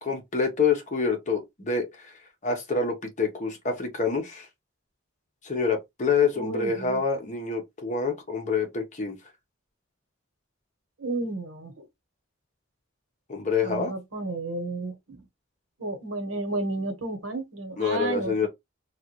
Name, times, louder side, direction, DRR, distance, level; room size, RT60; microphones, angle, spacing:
voice 1, 0.0-2.1 2.4-4.5 5.4-9.2 13.3-13.9 17.8-18.5, left 5 dB, 40° left, 1.0 m, -27 dB
voice 2, 6.3-7.0 11.0-11.8 13.6-15.2 15.8-18.5, right 2 dB, 80° right, 1.1 m, -32 dB
3.2 x 2.4 x 2.9 m
head